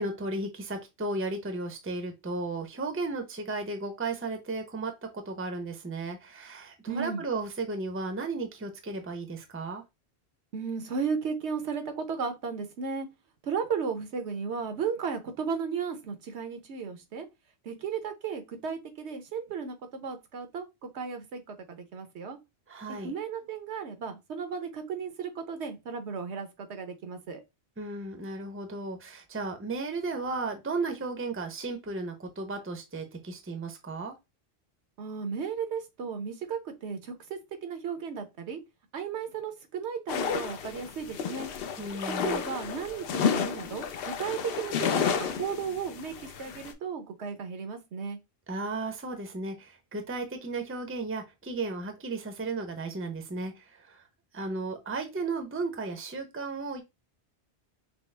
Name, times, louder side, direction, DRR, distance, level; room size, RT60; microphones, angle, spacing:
voice 1, 0.0-9.8 22.7-23.1 27.8-34.1 41.8-42.4 48.5-54.0 54.3-56.8, right 3 dB, 15° right, 0.6 m, -34 dB
voice 2, 6.9-7.2 10.5-13.1 13.4-17.3 17.6-22.4 22.9-27.4 35.0-38.6 38.9-41.5 42.2-48.2, right 6 dB, 80° right, 1.1 m, -35 dB
sound 1, 40.1-46.7, left 7 dB, 65° left, 0.8 m, -31 dB
6.0 x 2.0 x 3.2 m
omnidirectional pair, 1.1 m